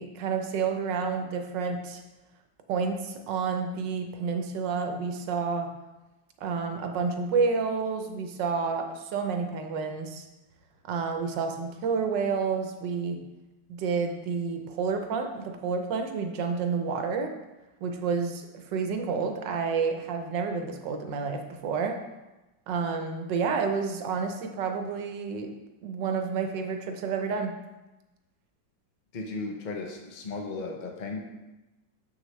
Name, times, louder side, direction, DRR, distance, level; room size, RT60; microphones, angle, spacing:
voice 1, 0.0-2.0 2.7-5.7 6.4-10.2 10.9-13.2 13.7-17.3 17.8-22.0 22.7-25.5 25.8-27.5, right 5 dB, 75° right, 5 dB, 1.4 m, -29 dB
voice 2, 29.1-31.2, left 3 dB, 55° left, 1 dB, 0.5 m, -35 dB
7.2 x 6.4 x 3.2 m, 1.0 s
omnidirectional pair, 2.0 m